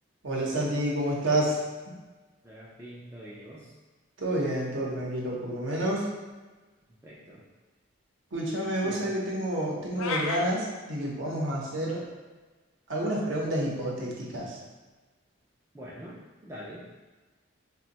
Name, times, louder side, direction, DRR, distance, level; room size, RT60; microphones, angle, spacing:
voice 1, 0.2-1.6 4.2-6.1 8.3-12.0 12.9-14.6, right 1 dB, 65° right, -3 dB, 0.7 m, -29 dB
voice 2, 2.5-3.6 7.0-7.4 8.8-9.0 15.7-16.1 16.4-16.8, equal, 10° right, -6 dB, 0.3 m, -43 dB
sound 1, 10.0-10.5, left 3 dB, 75° left, 0.3 m, -31 dB
2.5 x 2.2 x 3.9 m, 1.3 s
head